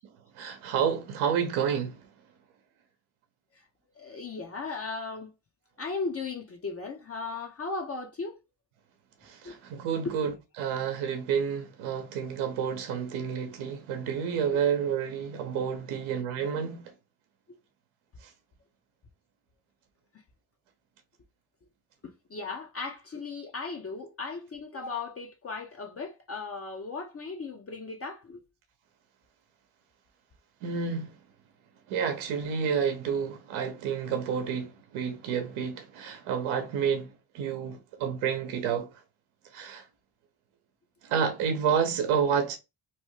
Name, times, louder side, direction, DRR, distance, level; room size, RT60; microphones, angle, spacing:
voice 1, 0.4-2.0 9.2-10.3 10.6-16.8 30.6-31.1 31.9-38.9 39.5-39.8 41.0-42.6, right 7 dB, 85° right, 0.9 m, -29 dB
voice 2, 4.0-5.3 5.8-8.4 9.4-9.6 10.0-10.1 14.5-14.7 22.0-28.4, left 4 dB, 30° left, 0.6 m, -37 dB
3.0 x 2.2 x 3.1 m
cardioid pair, 75°, 47 cm